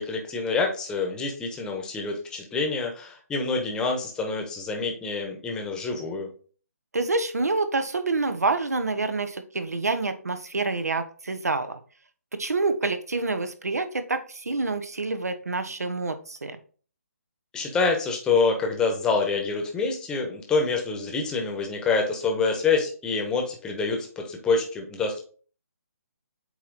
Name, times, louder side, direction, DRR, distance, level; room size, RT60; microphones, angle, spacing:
voice 1, 0.0-6.3 17.5-25.2, left 4 dB, 10° left, 2 dB, 1.1 m, -26 dB
voice 2, 6.9-11.8 12.3-16.6, right 3 dB, 75° right, 10 dB, 0.9 m, -27 dB
8.2 x 3.0 x 4.0 m, 0.41 s
figure-of-eight pair, 145°, 9 cm